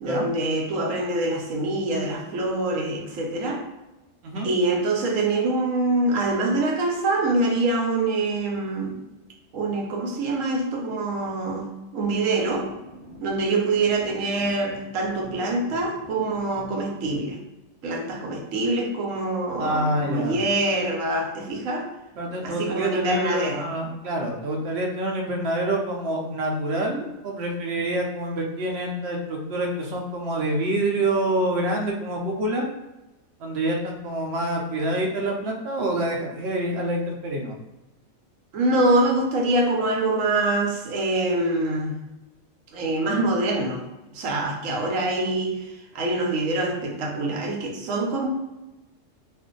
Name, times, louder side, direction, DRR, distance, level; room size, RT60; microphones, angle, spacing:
voice 1, 0.0-3.6 4.4-8.9 9.5-12.7 13.2-17.4 17.8-21.9 22.4-23.7 38.5-42.0 42.7-43.8 44.1-48.3, right 2 dB, 80° right, 0 dB, 1.1 m, -25 dB
sound 1, 12.0-17.3, equal, 30° right, 0.5 m, -45 dB
voice 2, 19.6-20.4 22.2-32.7 33.4-37.6, right 1 dB, 60° right, 1 dB, 0.9 m, -26 dB
2.5 x 2.5 x 3.7 m, 1.0 s
omnidirectional pair, 1.3 m